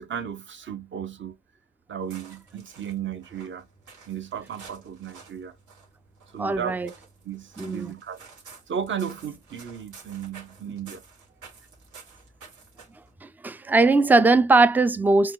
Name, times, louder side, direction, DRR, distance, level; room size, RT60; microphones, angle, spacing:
voice 1, 0.0-1.4 1.9-3.7 4.1-5.5 6.3-6.9 7.2-8.2 8.7-11.0, right 8 dB, 40° right, 0.8 m, -34 dB
sound 1, 2.0-13.1, right 5 dB, 75° right, 2.1 m, -50 dB
voice 2, 6.4-6.9 7.6-7.9 13.2-15.3, right 3 dB, 5° right, 0.3 m, -20 dB
4.6 x 2.3 x 3.8 m
cardioid pair, 90°, 30 cm